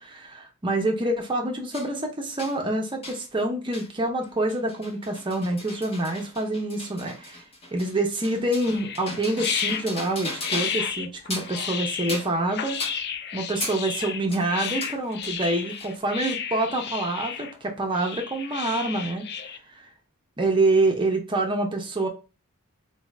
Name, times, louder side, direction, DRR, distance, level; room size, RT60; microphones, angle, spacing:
voice 1, 0.0-7.4 7.7-12.8 13.3-19.8 20.4-22.1, right 2 dB, 25° right, 2 dB, 0.6 m, -26 dB
sound 1, 1.7-1.9 2.4-2.6 3.0-3.2 3.7-3.9 4.2-10.9 11.2-11.6 12.1-12.4 12.8-13.0 13.6-13.8 14.3-16.0, left 2 dB, 30° left, 0.8 m, -37 dB
sound 2, 8.6-19.6, left 7 dB, 50° left, 0.4 m, -33 dB
4.0 x 2.5 x 3.1 m, 0.31 s
head